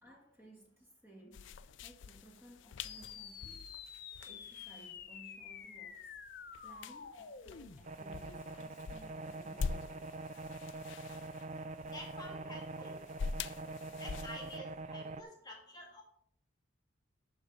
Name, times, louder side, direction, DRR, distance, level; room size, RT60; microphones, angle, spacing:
voice 1, 0.0-3.8 4.3-10.1 12.0-12.1, right 1 dB, 10° right, 1.8 m, -59 dB
sound 1, 1.3-14.6, left 5 dB, 70° left, 0.4 m, -46 dB
sound 2, 2.8-7.8, left 7 dB, 50° left, 0.8 m, -49 dB
sound 3, 7.8-15.2, right 3 dB, 35° right, 0.4 m, -44 dB
voice 2, 11.9-12.9 14.0-16.0, left 1 dB, 20° left, 1.8 m, -49 dB
11.5 x 4.0 x 5.4 m
head